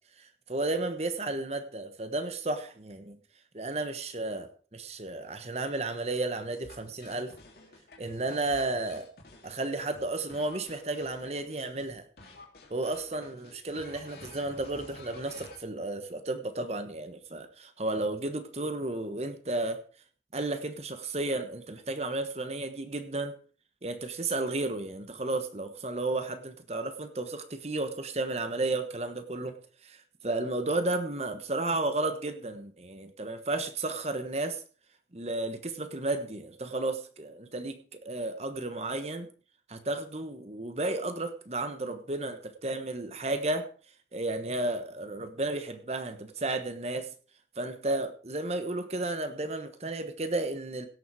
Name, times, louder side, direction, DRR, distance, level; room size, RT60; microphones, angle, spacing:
voice 1, 0.2-3.2 3.5-7.3 8.0-9.1 9.4-12.0 12.7-19.8 20.3-23.3 23.8-29.5 29.8-30.0 30.2-34.6 35.1-39.3 39.7-43.7 44.1-47.1 47.6-50.9, right 2 dB, 35° right, 9 dB, 1.1 m, -33 dB
sound 1, 6.6-11.9 12.2-15.6, left 2 dB, 55° left, 3.0 m, -51 dB
17.0 x 7.1 x 4.8 m, 0.40 s
head